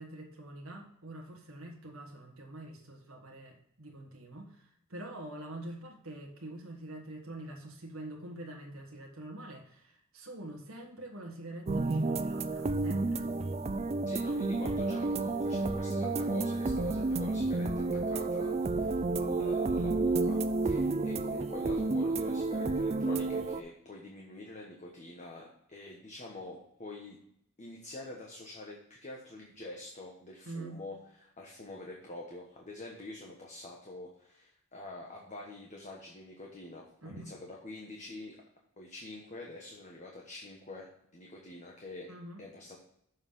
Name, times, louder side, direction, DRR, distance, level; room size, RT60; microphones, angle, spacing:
voice 1, 0.0-13.3 30.4-30.8 37.0-37.3 42.1-42.4, right 1 dB, 75° right, 1 dB, 1.5 m, -45 dB
sound 1, 11.7-23.6, right 3 dB, 30° right, 0.4 m, -30 dB
voice 2, 14.1-27.2 27.6-38.4 38.8-42.1 42.4-42.8, left 2 dB, 35° left, -1 dB, 1.2 m, -46 dB
7.2 x 5.5 x 5.5 m, 0.73 s
head